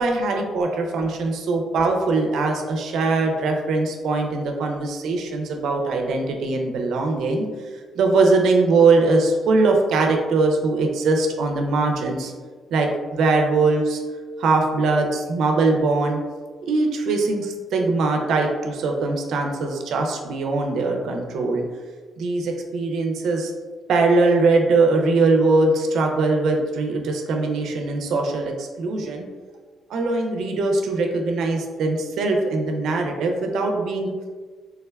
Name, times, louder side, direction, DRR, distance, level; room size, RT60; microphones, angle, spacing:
voice 1, 0.0-7.4 8.0-12.3 12.7-14.0 14.4-16.2 16.6-21.6 22.2-23.5 23.9-29.3 29.9-34.1, right 3 dB, 75° right, 2 dB, 0.4 m, -21 dB
3.5 x 2.1 x 2.2 m, 1.5 s
cardioid pair, 90°, 0 cm